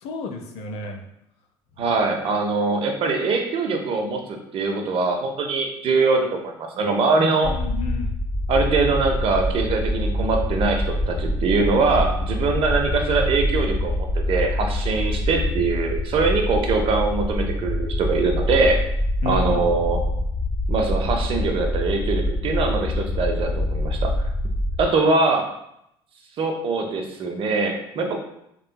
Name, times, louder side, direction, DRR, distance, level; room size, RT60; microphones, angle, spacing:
voice 1, 0.0-1.0 7.4-8.1 19.2-19.7, left 3 dB, 65° left, 3 dB, 0.5 m, -31 dB
voice 2, 1.8-7.5 8.5-18.8 19.3-20.0 20.7-24.1 24.8-25.5 26.4-28.2, right 3 dB, 50° right, 3 dB, 0.5 m, -22 dB
sound 1, 7.4-24.9, left 1 dB, 15° left, 0.4 m, -25 dB
3.0 x 2.7 x 2.2 m, 0.78 s
supercardioid pair, 75°, 12 cm